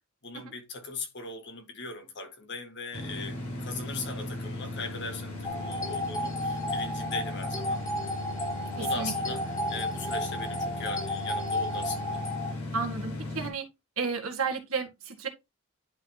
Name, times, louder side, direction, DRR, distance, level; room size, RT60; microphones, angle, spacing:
voice 1, 0.2-7.8 8.8-12.2, left 3 dB, 50° left, 1.6 m, -39 dB
sound 1, 2.9-13.5, left 2 dB, 80° left, 3.6 m, -37 dB
sound 2, 5.4-12.5, left 1 dB, 15° left, 1.1 m, -33 dB
voice 2, 12.7-13.7 14.0-15.3, right 5 dB, 75° right, 1.8 m, -32 dB
11.0 x 3.9 x 2.9 m
head